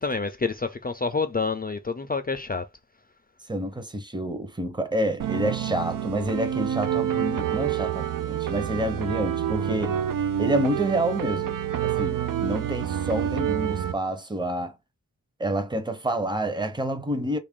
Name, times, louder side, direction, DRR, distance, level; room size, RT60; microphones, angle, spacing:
voice 1, 0.0-2.7, left 4 dB, 30° left, 0.4 m, -28 dB
voice 2, 3.5-10.0 10.4-11.6 11.8-14.8 15.4-17.4, right 1 dB, 15° right, 0.7 m, -28 dB
sound 1, 5.2-14.0, right 10 dB, 75° right, 0.5 m, -28 dB
3.3 x 2.5 x 3.6 m
wide cardioid pair, 85°, 33 cm